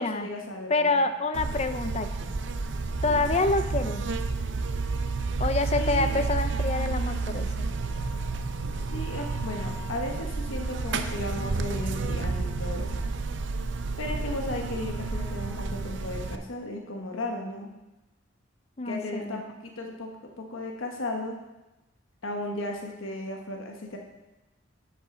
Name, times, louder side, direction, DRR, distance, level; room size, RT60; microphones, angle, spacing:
voice 1, 0.0-1.1 3.0-3.2 5.7-6.4 8.9-12.9 14.0-17.7 18.8-20.1 20.4-21.4 22.2-24.0, left 1 dB, 85° left, 1 dB, 1.3 m, -35 dB
voice 2, 0.7-2.3 3.0-4.1 5.4-7.7 18.8-19.4, left 3 dB, 30° left, 9 dB, 0.6 m, -27 dB
Buzz, 1.3-16.4, right 3 dB, 65° right, 0.6 m, -30 dB
11.0 x 8.0 x 3.8 m, 1.0 s
head